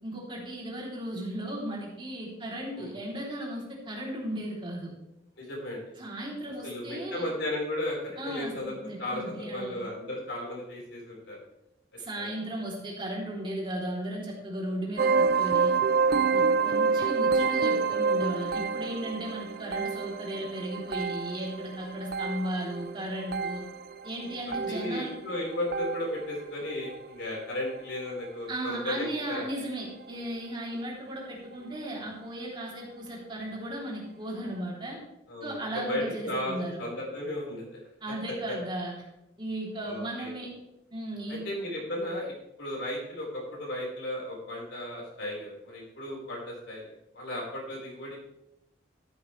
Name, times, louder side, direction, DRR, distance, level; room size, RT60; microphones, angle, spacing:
voice 1, 0.0-4.9 6.0-7.2 8.2-9.8 12.0-15.7 16.1-23.6 24.0-25.1 28.5-35.0 35.4-36.8 38.0-38.9 39.4-40.5 40.9-41.4, right 1 dB, 25° right, -3 dB, 3.4 m, -36 dB
voice 2, 5.4-5.8 6.6-11.4 12.2-12.3 16.3-16.5 24.7-29.5 35.3-37.8 38.1-38.2 39.8-40.3 41.3-42.3 42.6-46.8 47.1-48.2, left 1 dB, 90° left, -3 dB, 5.0 m, -35 dB
sound 1, 15.0-26.4 26.7-27.1 27.8-28.0 28.2-28.3 29.0-29.1, right 5 dB, 55° right, 0.6 m, -28 dB
13.0 x 11.5 x 3.4 m, 0.87 s
head